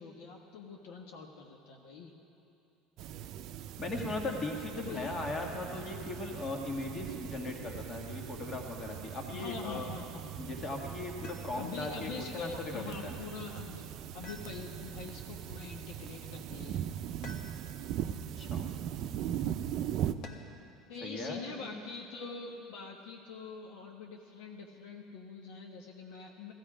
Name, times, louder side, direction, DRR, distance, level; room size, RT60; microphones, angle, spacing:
voice 1, 0.0-2.2 4.7-5.2 9.3-10.5 11.6-13.9 14.1-16.9 20.9-26.5, left 4 dB, 75° left, 1 dB, 1.2 m, -44 dB
sound 1, 3.0-20.1, right 10 dB, 60° right, 0.5 m, -40 dB
voice 2, 3.8-9.9 10.4-13.2 18.4-18.7 21.0-21.8, left 2 dB, 35° left, 1 dB, 2.0 m, -38 dB
sound 2, 11.2-11.9 14.2-15.0 17.2-17.9 20.2-20.7 22.4-23.1, left 3 dB, 60° left, 1.4 m, -51 dB
15.0 x 14.5 x 5.1 m, 2.7 s
supercardioid pair, 110°, 0 cm